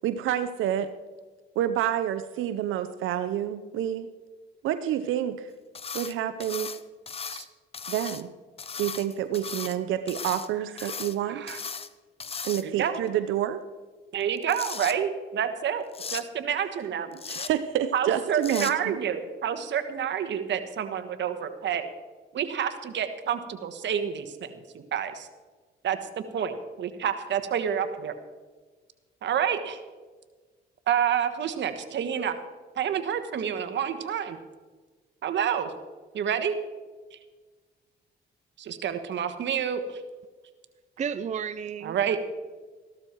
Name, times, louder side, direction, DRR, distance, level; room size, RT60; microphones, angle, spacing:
voice 1, 0.0-0.9 1.6-4.1 4.6-5.5 5.9-6.7 7.9-8.3 8.8-11.4 12.4-13.6 17.3-19.0, right 11 dB, 85° right, 11 dB, 0.7 m, -28 dB
sound 1, 5.7-6.1 6.4-7.5 7.7-8.2 8.6-9.8 10.1-10.5 10.8-11.2 11.5-11.9 12.2-12.9 14.2-14.9 15.9-16.2 17.1-17.5 18.4-18.7, left 5 dB, 30° left, 0.7 m, -36 dB
voice 2, 11.3-11.6 12.5-13.0 14.1-15.8 16.1-17.2 17.9-21.9 22.3-25.3 25.8-26.0 26.3-28.2 29.2-29.8 30.9-32.3 32.8-34.4 35.2-35.7 36.1-36.5 37.1-37.2 38.6-40.0 41.8-42.2, right 8 dB, 65° right, 9 dB, 1.4 m, -28 dB
voice 3, 41.0-42.2, right 7 dB, 35° right, 12 dB, 0.5 m, -33 dB
14.5 x 12.5 x 4.5 m, 1.4 s
cardioid pair, 90°, 20 cm